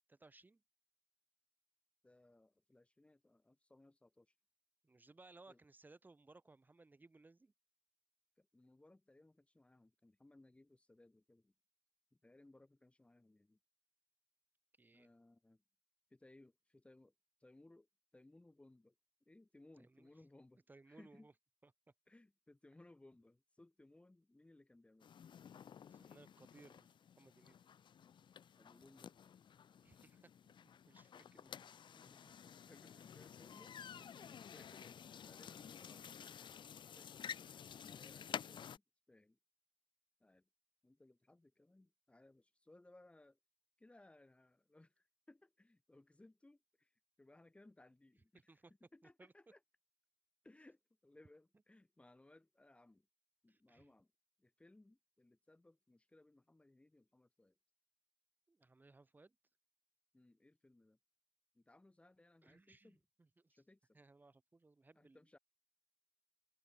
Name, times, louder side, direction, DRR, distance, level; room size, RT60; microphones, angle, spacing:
voice 1, 0.1-0.6 4.8-7.5 14.8-15.1 19.8-20.1 20.7-21.3 21.6-21.7 25.9-27.6 29.8-31.7 34.1-34.4 48.3-48.7 49.2-49.3 53.5-53.9 58.5-59.4 62.4-63.6 63.9-65.2, right 3 dB, 25° right, 2.4 m, -64 dB
voice 2, 2.0-4.3 5.5-5.6 8.4-11.5 12.2-13.6 14.9-15.6 16.1-17.1 17.4-18.9 19.3-21.3 22.1-25.1 28.6-29.3 31.2-31.6 32.0-33.8 34.2-36.5 36.8-37.3 37.8-39.4 40.2-40.5 40.8-43.4 43.8-48.6 48.9-49.6 50.4-53.1 53.4-54.1 54.4-57.6 60.1-61.0 61.5-63.0 63.5-64.0 64.9-65.4, left 2 dB, 15° left, 2.4 m, -65 dB
sound 1, 25.0-38.8, left 8 dB, 75° left, 1.2 m, -52 dB
wide cardioid pair, 150°, 8 cm